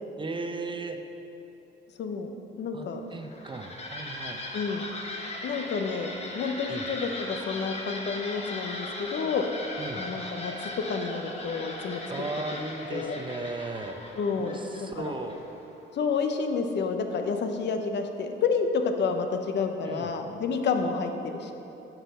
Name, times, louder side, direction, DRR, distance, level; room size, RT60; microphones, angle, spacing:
voice 1, 0.2-1.0 2.7-4.4 6.7-6.9 9.8-10.0 12.1-14.0 14.4-15.4 19.9-20.1, right 3 dB, 25° right, 6 dB, 0.7 m, -36 dB
voice 2, 2.0-3.0 4.5-4.8 5.4-9.4 9.9-12.0 12.9-13.2 14.2-15.1 15.9-21.5, left 5 dB, 60° left, 6 dB, 0.8 m, -30 dB
sound 1, 3.1-15.7, left 1 dB, 30° left, 1.1 m, -38 dB
7.9 x 6.4 x 5.5 m, 3.0 s
cardioid pair, 90°, 20 cm